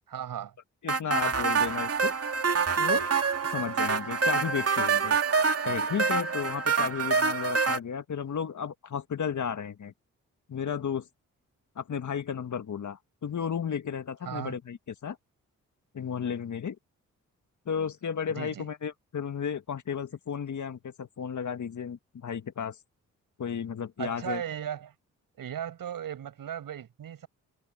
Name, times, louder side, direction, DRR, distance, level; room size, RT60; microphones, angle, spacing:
voice 1, 0.1-0.5 14.2-14.6 18.3-18.7 24.0-24.9 25.4-27.3, right 9 dB, 75° right, 7.9 m, -36 dB
voice 2, 0.8-2.1 2.8-3.1 3.5-5.2 5.6-9.9 10.5-11.1 11.8-15.2 15.9-16.8 17.7-22.8 23.4-24.4, left 7 dB, 55° left, 1.9 m, -33 dB
sound 1, 0.9-7.8, right 5 dB, 45° right, 2.1 m, -26 dB
supercardioid pair, 55°, 34 cm